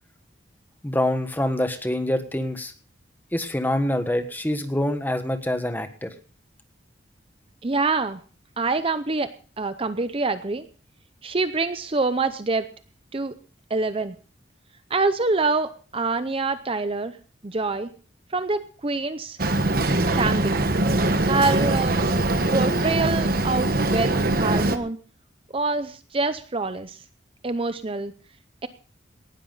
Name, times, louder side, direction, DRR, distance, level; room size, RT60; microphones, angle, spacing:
voice 1, 0.8-2.7 3.3-6.1, left 1 dB, 10° left, 8 dB, 1.4 m, -25 dB
voice 2, 7.6-8.2 8.6-9.3 9.6-10.6 11.2-12.6 13.1-13.3 13.7-14.2 14.9-17.2 17.4-17.9 18.3-19.4 20.1-20.5 21.3-22.0 22.5-25.0 25.5-27.0 27.4-28.1 28.6-28.7, right 3 dB, 30° right, 11 dB, 0.6 m, -25 dB
Boat Water vehicle, 19.4-24.8, right 2 dB, 50° right, 1.2 m, -22 dB
18.5 x 12.5 x 3.9 m, 0.39 s
head